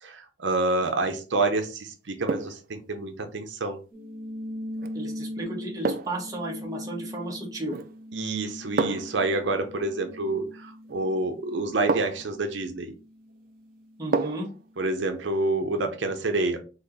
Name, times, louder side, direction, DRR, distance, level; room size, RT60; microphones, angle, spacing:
voice 1, 0.0-3.8 8.1-12.9 14.8-16.6, right 2 dB, 75° right, 5 dB, 0.7 m, -28 dB
sound 1, 0.7-1.1 2.3-2.7 4.8-5.0 5.8-6.3 7.6-8.0 8.8-9.2 10.9-11.0 11.9-12.4 14.1-14.6 15.0-15.1, right 4 dB, 50° right, 0.3 m, -29 dB
sound 2, 3.9-14.8, left 1 dB, 5° left, 1.9 m, -41 dB
voice 2, 4.9-7.8 14.0-14.5, right 1 dB, 20° right, -2 dB, 1.3 m, -34 dB
4.2 x 3.0 x 3.9 m, 0.34 s
head